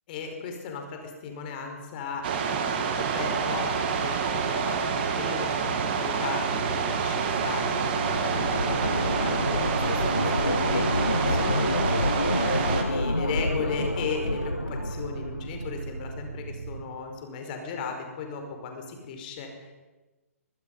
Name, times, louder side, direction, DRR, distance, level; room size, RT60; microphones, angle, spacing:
voice 1, 0.1-19.7, left 5 dB, 35° left, 4 dB, 4.9 m, -37 dB
sound 1, 2.2-12.8, right 6 dB, 40° right, 3.0 m, -28 dB
sound 2, 2.9-16.8, right 3 dB, 70° right, 2.1 m, -38 dB
sound 3, 6.9-16.0, left 1 dB, 90° left, 0.8 m, -29 dB
24.5 x 22.0 x 5.5 m, 1.2 s
figure-of-eight pair, 125°, 8 cm